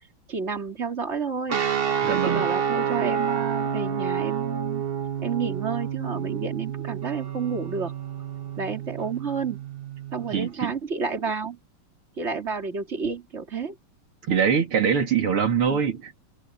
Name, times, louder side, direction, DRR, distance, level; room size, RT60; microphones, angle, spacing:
voice 1, 0.3-1.6 2.1-4.8 5.2-7.9 8.6-9.6 10.1-11.6 12.2-13.8 15.7-15.8, right 5 dB, 30° right, 3.3 m, -30 dB
sound 1, 1.5-10.4, right 8 dB, 50° right, 0.6 m, -29 dB
voice 2, 2.0-2.5 10.3-10.7 14.2-16.2, right 7 dB, 85° right, 3.6 m, -23 dB
omnidirectional pair, 2.4 m